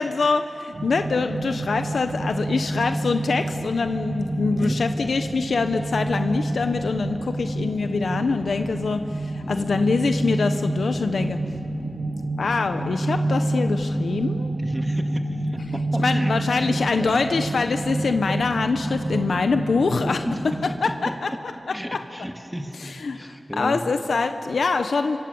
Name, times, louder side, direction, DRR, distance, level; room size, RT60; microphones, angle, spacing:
voice 1, 0.0-11.4 12.4-14.5 16.0-20.2 20.8-21.3 21.9-22.0 22.8-23.2 23.6-25.2, left 4 dB, 85° left, 7 dB, 0.9 m, -24 dB
sound 1, 0.7-20.6, right 1 dB, 55° right, 5.9 m, -28 dB
voice 2, 4.5-4.8 9.4-9.7 11.9-12.2 14.6-17.2 20.2-21.4 21.7-23.9, equal, 5° right, 4 dB, 2.1 m, -34 dB
29.5 x 25.0 x 7.1 m, 2.7 s
wide cardioid pair, 70°, 0 cm